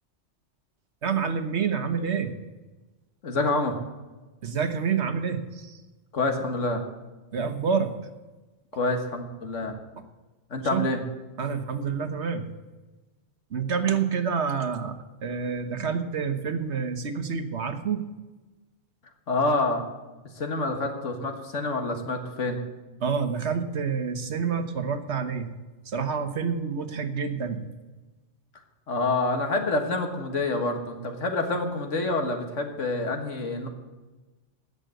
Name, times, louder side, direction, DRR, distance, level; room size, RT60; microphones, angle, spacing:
voice 1, 1.0-2.3 4.4-5.8 7.3-7.9 10.7-10.8 11.4-12.5 13.5-18.0 23.0-25.5 25.8-27.6, right 6 dB, 65° right, 8 dB, 1.4 m, -28 dB
voice 2, 3.2-3.8 6.1-6.8 8.7-9.8 10.5-11.0 19.3-19.8 20.4-22.6 28.9-33.7, left 2 dB, 90° left, 5 dB, 1.9 m, -27 dB
16.0 x 6.6 x 7.7 m, 1.2 s
omnidirectional pair, 1.2 m